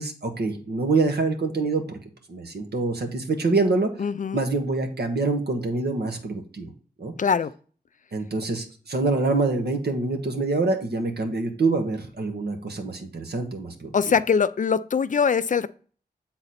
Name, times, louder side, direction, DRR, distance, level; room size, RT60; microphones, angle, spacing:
voice 1, 0.0-2.0 2.3-3.9 4.3-6.7 7.0-7.1 8.1-13.9, right 3 dB, 80° right, 1.3 m, -25 dB
voice 2, 4.0-4.4 7.2-7.5 13.9-15.7, left 6 dB, 50° left, 0.4 m, -22 dB
7.8 x 4.0 x 4.2 m
wide cardioid pair, 85°, 17 cm